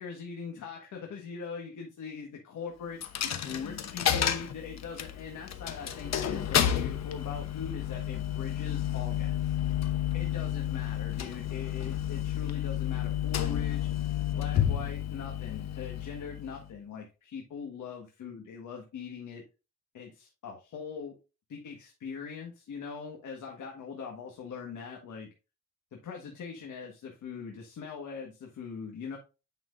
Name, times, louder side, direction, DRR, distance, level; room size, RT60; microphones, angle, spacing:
voice 1, 0.0-3.2 3.4-9.6 10.1-13.9 14.4-19.4 19.9-21.2 21.5-25.3 25.9-29.2, left 6 dB, 75° left, 1 dB, 1.6 m, -41 dB
Coin (dropping), 3.0-16.7, left 10 dB, 55° left, 1.0 m, -31 dB
9.1 x 5.8 x 2.6 m, 0.30 s
wide cardioid pair, 145°, 31 cm